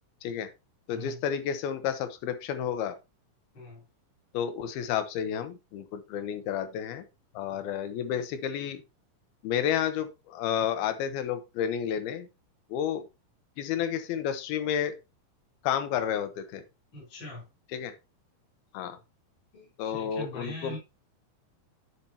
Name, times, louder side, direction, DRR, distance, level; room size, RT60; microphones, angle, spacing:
voice 1, 0.9-3.0 4.3-7.1 7.4-8.8 9.4-12.3 12.7-13.0 13.6-14.9 15.6-16.6 17.7-17.9 18.7-19.0 19.8-20.8, left 9 dB, 85° left, 10 dB, 2.8 m, -31 dB
voice 2, 16.9-17.4 19.5-20.8, left 1 dB, 30° left, -5 dB, 4.1 m, -41 dB
10.0 x 5.5 x 2.9 m, 0.26 s
omnidirectional pair, 4.3 m